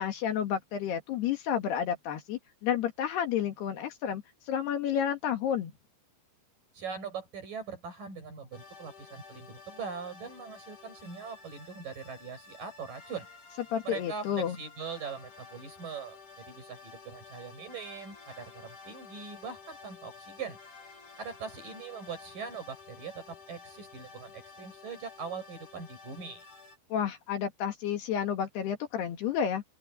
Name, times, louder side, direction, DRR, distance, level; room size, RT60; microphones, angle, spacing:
voice 1, 0.0-5.7 13.7-14.6 26.9-29.6, left 9 dB, 70° left, 3.8 m, -31 dB
voice 2, 6.7-13.3 13.8-20.6 21.2-26.4, right 5 dB, 45° right, 8.6 m, -41 dB
sound 1, 8.5-26.8, left 4 dB, 45° left, 4.6 m, -51 dB
open air
omnidirectional pair, 5.2 m